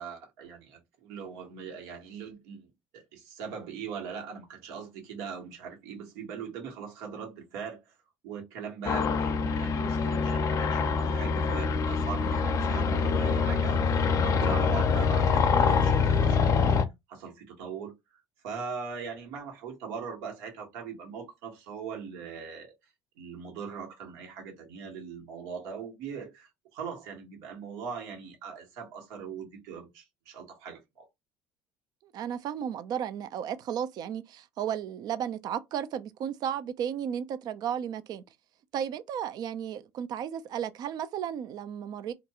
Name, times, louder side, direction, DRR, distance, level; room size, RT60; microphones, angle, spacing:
voice 1, 0.0-2.7 2.9-8.0 8.2-16.8 17.1-22.7 23.2-31.1, right 6 dB, 80° right, 1.3 m, -41 dB
sound 1, 8.8-16.8, left 5 dB, 40° left, 0.5 m, -25 dB
voice 2, 32.0-38.2 38.7-42.1, right 9 dB, 55° right, 0.4 m, -34 dB
2.5 x 2.2 x 2.8 m
supercardioid pair, 85°, 8 cm